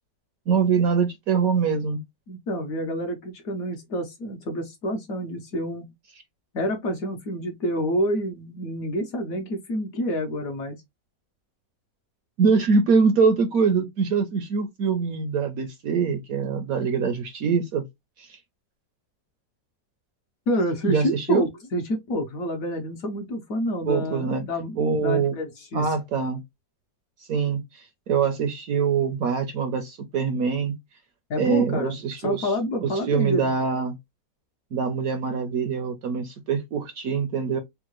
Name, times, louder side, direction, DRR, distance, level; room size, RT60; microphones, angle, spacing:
voice 1, 0.5-2.0 12.4-17.8 18.2-18.4 20.9-21.5 23.8-24.4 24.8-25.3 25.7-26.4 27.2-30.8 31.4-32.5 32.8-34.0 34.7-37.6, right 5 dB, 70° right, 0.9 m, -24 dB
voice 2, 2.3-5.9 6.5-10.8 20.5-24.8 25.0-25.9 31.3-33.5, equal, 60° left, 1.0 m, -28 dB
3.6 x 2.1 x 3.0 m
omnidirectional pair, 1.9 m